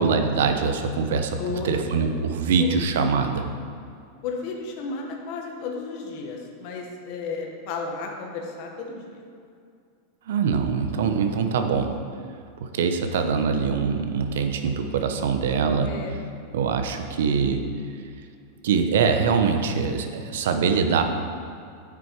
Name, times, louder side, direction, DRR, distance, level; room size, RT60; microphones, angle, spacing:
voice 1, 0.0-3.5 10.3-11.9 12.6-16.0 16.5-17.6 18.6-21.0, right 5 dB, 80° right, 6 dB, 0.8 m, -23 dB
voice 2, 1.4-2.1 2.6-2.7 4.2-9.2 15.9-16.4, left 4 dB, 45° left, 1 dB, 1.1 m, -33 dB
8.8 x 6.2 x 4.5 m, 2.3 s
supercardioid pair, 165°, 0 cm